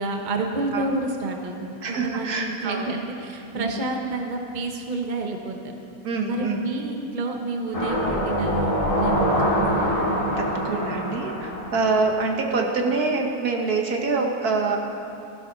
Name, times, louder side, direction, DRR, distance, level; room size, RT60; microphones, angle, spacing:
voice 1, 0.0-5.7 6.2-10.0, right 3 dB, 30° right, 2 dB, 1.2 m, -29 dB
voice 2, 1.8-2.9 3.6-3.8 6.0-6.6 10.4-14.8, right 4 dB, 70° right, 1 dB, 1.8 m, -25 dB
sound 1, 7.7-12.6 13.0-13.1, equal, 20° left, 2.4 m, -25 dB
17.5 x 15.0 x 4.1 m, 2.7 s
omnidirectional pair, 1.7 m